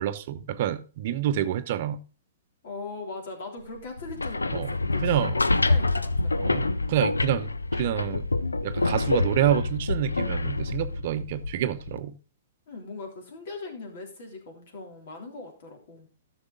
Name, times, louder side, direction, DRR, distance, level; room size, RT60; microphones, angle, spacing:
voice 1, 0.0-2.0 4.5-4.7 5.0-5.3 6.4-8.3 8.6-12.1, right 11 dB, 50° right, 0.8 m, -27 dB
voice 2, 2.6-6.5 12.7-16.1, left 3 dB, 55° left, 3.4 m, -40 dB
sound 1, 4.0-12.0, left 2 dB, 85° left, 0.6 m, -27 dB
13.5 x 6.3 x 3.9 m
figure-of-eight pair, 115°, 0 cm